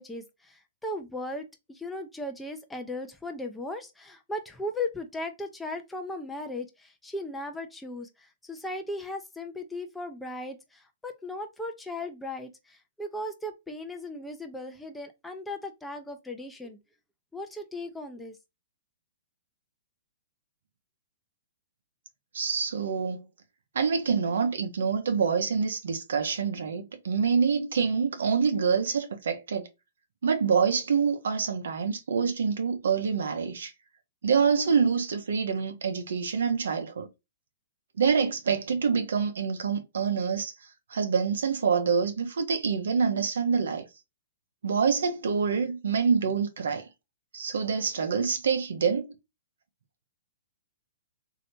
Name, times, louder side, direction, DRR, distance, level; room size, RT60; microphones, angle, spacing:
voice 1, 0.0-16.8 17.3-18.4, left 1 dB, 5° left, 0.5 m, -37 dB
voice 2, 22.3-23.2 23.7-29.7 30.2-33.7 34.2-37.1 38.0-40.5 40.9-43.8 44.6-46.9 47.3-49.1, right 6 dB, 80° right, 0.8 m, -26 dB
3.2 x 2.8 x 2.6 m
hypercardioid pair, 140°, 0 cm